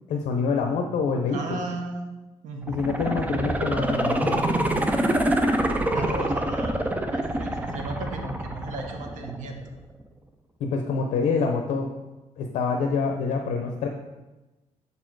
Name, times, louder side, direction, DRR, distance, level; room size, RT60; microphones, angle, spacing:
voice 1, 0.1-1.6 2.7-4.5 10.6-11.9 12.4-13.9, left 4 dB, 80° left, 3 dB, 0.6 m, -26 dB
voice 2, 1.3-2.2 2.4-3.0 5.9-9.6, right 2 dB, 75° right, 3 dB, 1.0 m, -35 dB
sound 1, 2.6-9.6 10.0-10.1, right 1 dB, 10° right, 0.4 m, -26 dB
6.7 x 4.3 x 4.6 m, 1.1 s
cardioid pair, 165°, 13 cm